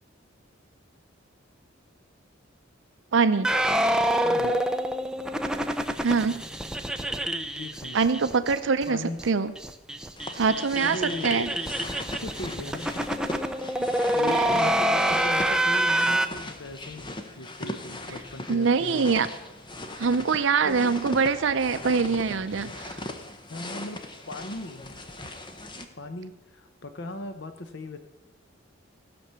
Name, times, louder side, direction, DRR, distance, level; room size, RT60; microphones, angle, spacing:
voice 1, 3.1-3.5 6.0-6.4 7.9-9.5 10.3-11.0 11.2-11.5 14.3-14.4 18.5-19.3 20.0-23.0, right 5 dB, 65° right, 11 dB, 0.5 m, -24 dB
sound 1, 3.4-8.5 8.8-8.9 9.2-9.3 9.6-16.3, right 1 dB, 5° right, 0.5 m, -26 dB
voice 2, 4.2-4.6 7.6-8.0 8.9-9.2 10.8-11.6 11.8-13.2 14.1-19.2 20.6-21.0 23.5-24.0 24.3-24.9 26.0-28.0, left 2 dB, 60° left, 8 dB, 0.7 m, -38 dB
sound 2, 10.2-25.8, left 1 dB, 25° left, 0.9 m, -39 dB
14.5 x 6.0 x 6.8 m, 1.1 s
head